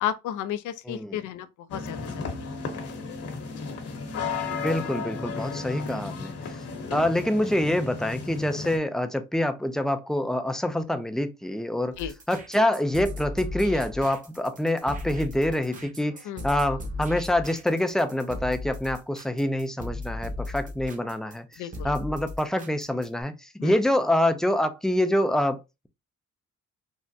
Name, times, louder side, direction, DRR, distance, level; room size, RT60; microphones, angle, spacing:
voice 1, 0.0-2.8 3.6-3.7 12.0-12.1 16.3-16.4 21.6-21.9 23.6-23.7, left 10 dB, 80° left, 0.5 m, -33 dB
voice 2, 0.9-1.3 4.6-6.6 6.9-12.0 12.3-25.9, left 1 dB, ahead, 0.3 m, -26 dB
sound 1, 1.7-8.8, left 4 dB, 50° left, 0.9 m, -34 dB
sound 2, 11.9-23.2, left 2 dB, 25° right, 0.9 m, -36 dB
3.5 x 2.1 x 2.6 m
cardioid pair, 90°, 30 cm